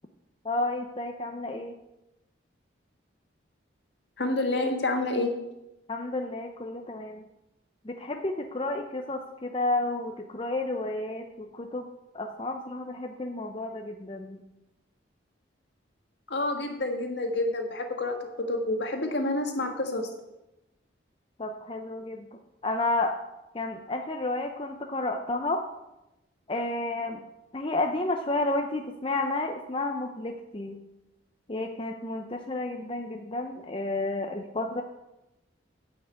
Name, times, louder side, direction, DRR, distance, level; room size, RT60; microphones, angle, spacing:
voice 1, 0.4-1.7 5.9-7.2 7.8-11.9 12.1-14.4 21.4-22.3 22.6-23.2 23.5-25.6 26.5-27.2 27.5-30.8 31.5-34.8, left 2 dB, 25° left, 3 dB, 0.6 m, -31 dB
voice 2, 4.2-5.3 16.3-20.1, left 2 dB, 60° left, 3 dB, 1.7 m, -28 dB
10.0 x 5.9 x 8.0 m, 0.94 s
head